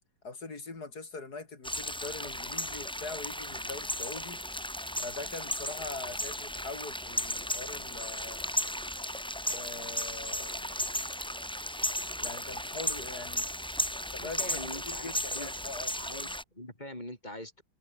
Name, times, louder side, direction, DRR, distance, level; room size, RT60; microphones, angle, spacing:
voice 1, 0.2-4.4 5.0-8.5 9.5-10.9 12.2-13.5 14.1-14.6 14.8-15.9, left 3 dB, 55° left, 4.1 m, -42 dB
sound 1, 1.6-16.4, equal, 5° left, 1.4 m, -35 dB
voice 2, 14.2-15.5 16.0-17.6, left 1 dB, 20° left, 6.9 m, -43 dB
omnidirectional pair, 2.1 m